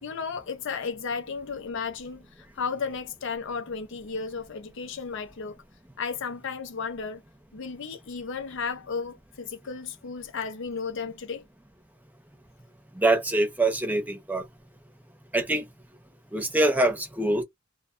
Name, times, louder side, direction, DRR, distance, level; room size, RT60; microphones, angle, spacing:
voice 1, 0.0-5.6 6.0-7.2 7.5-11.4, left 5 dB, 65° left, 0.5 m, -34 dB
voice 2, 13.0-14.4 15.3-15.6 16.3-17.4, right 2 dB, 10° right, 0.7 m, -24 dB
2.5 x 2.2 x 2.4 m
head